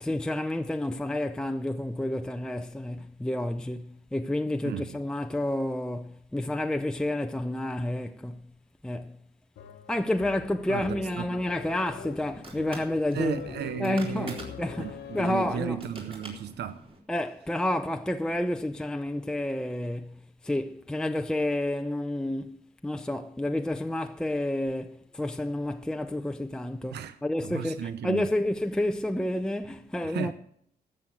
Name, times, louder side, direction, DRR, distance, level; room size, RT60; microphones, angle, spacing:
voice 1, 0.0-8.5 8.8-9.2 9.9-13.4 13.8-15.8 17.1-30.3, left 1 dB, 5° left, 0.6 m, -30 dB
voice 2, 4.6-5.0 10.7-11.4 13.1-14.4 14.8-16.8 26.9-27.2 27.4-28.3 30.0-30.3, right 9 dB, 80° right, 0.8 m, -35 dB
sound 1, 9.6-16.0, left 8 dB, 85° left, 1.1 m, -44 dB
sound 2, 11.4-17.0, right 2 dB, 30° right, 4.1 m, -46 dB
13.5 x 7.7 x 7.8 m
cardioid pair, 110°, 17 cm